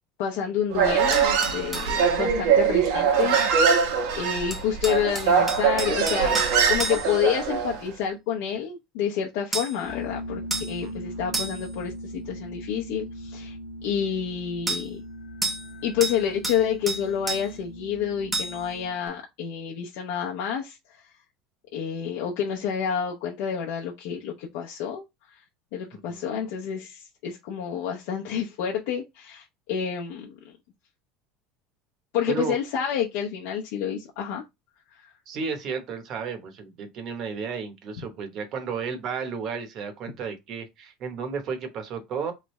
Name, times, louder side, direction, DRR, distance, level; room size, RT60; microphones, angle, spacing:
voice 1, 0.2-3.7 4.1-13.5 13.8-15.0 15.8-21.1 21.7-25.0 25.3-25.4 25.7-30.5 32.1-34.4 35.0-35.1, left 8 dB, 65° left, 0.7 m, -29 dB
Human voice, 0.7-7.8, right 6 dB, 70° right, 1.0 m, -22 dB
sound 1, 1.1-1.9 4.5-7.3 9.5-9.8 10.5-10.8 11.3-11.7 14.7-14.9 15.4-15.7 16.0-16.6 16.9-17.5 18.3-18.7, right 2 dB, 5° right, 0.5 m, -31 dB
sound 2, 9.8-19.1, left 1 dB, 45° left, 1.1 m, -39 dB
voice 2, 10.8-11.3 25.9-26.5 32.3-32.6 35.3-42.3, right 5 dB, 35° right, 0.9 m, -33 dB
3.6 x 3.2 x 3.1 m
cardioid pair, 180°, 0 cm